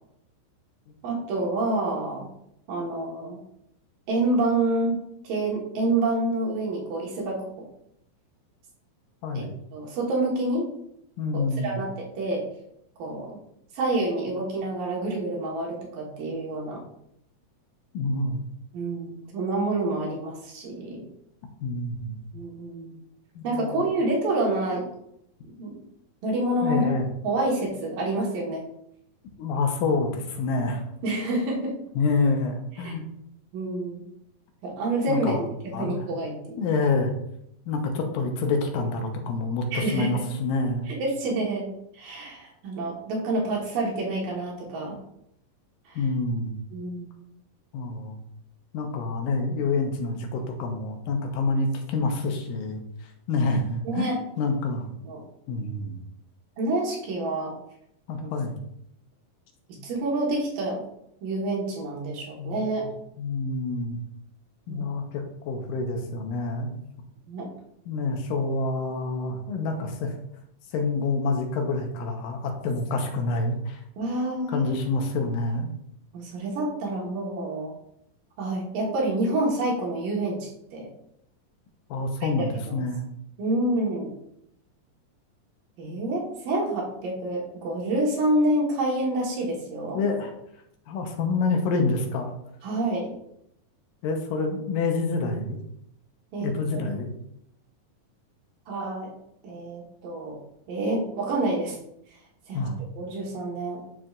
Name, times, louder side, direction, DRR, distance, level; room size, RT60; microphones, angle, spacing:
voice 1, 1.0-2.3 2.7-3.4 4.1-5.0 5.2-7.7 9.3-9.4 9.7-10.6 11.3-12.4 13.0-13.4 13.7-16.8 18.7-21.1 22.3-23.0 23.4-24.9 25.6-25.8 26.2-26.9 27.2-28.6 31.0-31.7 32.8-33.0 33.5-34.0 34.6-36.7 39.7-40.1 40.9-45.0 45.9-46.1 46.7-47.1 53.8-54.2 55.0-55.2 56.6-57.5 58.2-58.3 59.8-60.9 61.2-62.9 64.7-64.9 67.3-67.5 74.0-74.7 76.1-77.7 78.4-80.9 82.7-82.8 83.4-84.1 85.8-90.0 92.6-93.1 96.3-96.8 98.7-99.1 99.4-100.4 100.7-101.8 102.5-103.8, right 2 dB, 75° right, -2 dB, 3.1 m, -28 dB
voice 2, 11.2-11.8 17.9-18.4 21.6-22.3 23.4-23.8 26.6-27.1 29.4-30.8 32.0-33.0 35.1-35.4 35.7-36.0 36.6-37.1 37.7-40.9 46.0-46.5 47.7-48.2 48.7-52.8 53.3-54.9 55.5-56.0 58.1-58.5 62.4-62.6 63.2-64.0 64.7-66.7 67.9-70.1 70.7-73.8 74.5-75.7 81.9-83.1 89.9-90.3 90.9-92.3 94.0-95.6 96.4-97.1 102.5-102.7, left 3 dB, 85° left, 4 dB, 2.6 m, -27 dB
11.0 x 4.5 x 2.4 m, 0.77 s
omnidirectional pair, 4.0 m